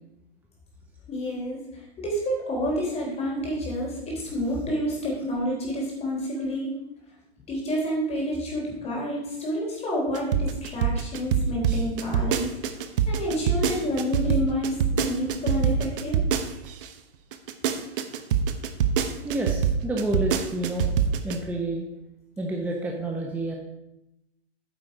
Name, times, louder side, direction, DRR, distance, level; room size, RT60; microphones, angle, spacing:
voice 1, 1.1-6.7 7.5-12.5 13.1-16.2, equal, 20° left, -2 dB, 3.9 m, -29 dB
sound 1, 10.1-16.9 17.3-21.4, right 8 dB, 55° right, 1.1 m, -24 dB
voice 2, 19.2-20.9 21.2-21.9 22.4-23.5, right 1 dB, 5° right, 0 dB, 0.9 m, -29 dB
9.3 x 7.3 x 4.9 m, 0.89 s
hypercardioid pair, 125°, 31 cm